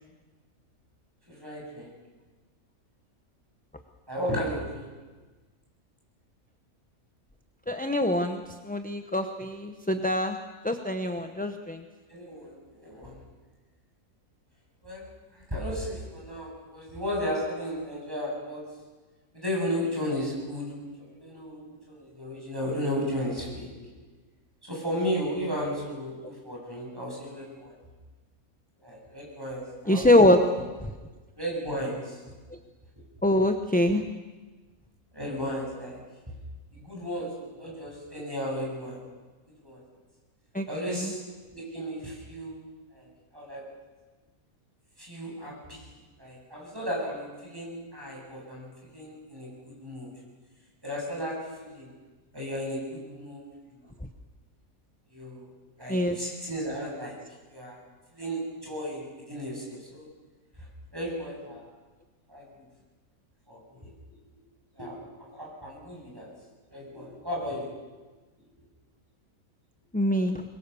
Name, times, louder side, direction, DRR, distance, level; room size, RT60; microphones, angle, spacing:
voice 1, 1.3-1.9 4.1-4.9 12.1-13.2 14.8-15.0 15.3-18.6 19.3-20.7 21.0-24.0 24.6-27.7 28.8-30.2 31.3-32.2 35.1-36.0 36.7-39.0 39.6-39.8 40.6-41.2 41.5-42.6 42.9-43.1 43.3-43.6 45.0-49.5 49.8-50.1 50.8-51.9 52.3-53.5 53.9-54.0 55.1-55.5 55.8-57.2 57.5-57.8 58.1-60.1 60.9-61.7 62.3-62.5 63.5-64.2 64.8-66.3 66.7-67.7, equal, 15° right, -3 dB, 7.8 m, -34 dB
voice 2, 7.7-10.4 10.6-11.8 29.9-30.4 30.8-30.9 33.2-34.0 40.5-41.1 55.9-56.2 69.9-70.4, left 1 dB, 10° left, 6 dB, 0.7 m, -24 dB
24.0 x 22.0 x 7.0 m, 1.3 s
omnidirectional pair, 1.5 m